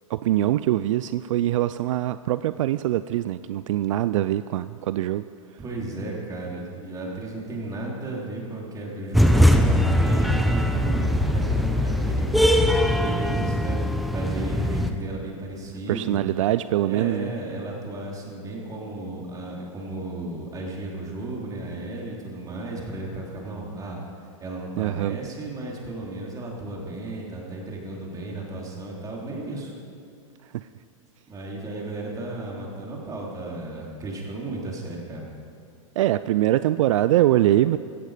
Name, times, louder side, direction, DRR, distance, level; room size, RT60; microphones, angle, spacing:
voice 1, 0.1-5.2 15.9-17.3 24.8-25.2 30.5-30.7 36.0-37.8, right 14 dB, 65° right, 14 dB, 0.4 m, -23 dB
voice 2, 5.6-9.5 10.0-13.8 14.1-16.2 16.8-24.0 24.4-29.7 31.3-35.2, right 2 dB, 20° right, -2 dB, 3.5 m, -34 dB
sound 1, 9.1-14.9, equal, ahead, 0.8 m, -21 dB
17.0 x 14.0 x 5.1 m, 2.3 s
hypercardioid pair, 125°, 18 cm